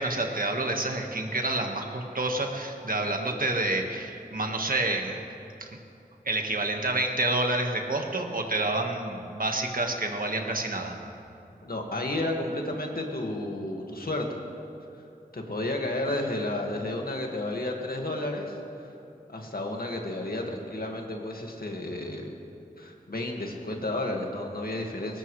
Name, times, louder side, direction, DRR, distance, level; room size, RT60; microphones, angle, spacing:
voice 1, 0.0-5.2 5.6-5.7 6.2-11.0, right 2 dB, 65° right, 3 dB, 1.6 m, -28 dB
voice 2, 11.6-14.2 15.3-18.9 19.3-22.3 22.8-25.2, left 1 dB, 70° left, 1 dB, 2.0 m, -32 dB
21.0 x 19.0 x 3.3 m, 2.7 s
wide cardioid pair, 55°, 16 cm